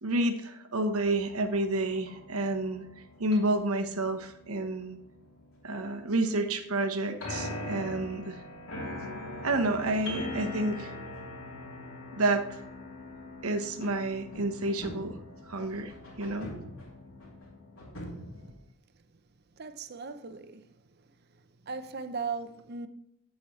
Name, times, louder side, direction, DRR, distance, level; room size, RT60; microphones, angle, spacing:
voice 1, 0.0-2.8 3.2-5.0 5.6-8.4 9.4-10.9 12.2-12.6 13.4-15.2 15.5-15.9 16.2-16.5, right 2 dB, 80° right, 1.1 m, -29 dB
sound 1, 0.9-18.5, left 1 dB, 65° left, 2.9 m, -42 dB
voice 2, 19.6-20.7 21.7-22.9, right 5 dB, 45° right, 0.6 m, -37 dB
8.5 x 8.2 x 3.2 m
head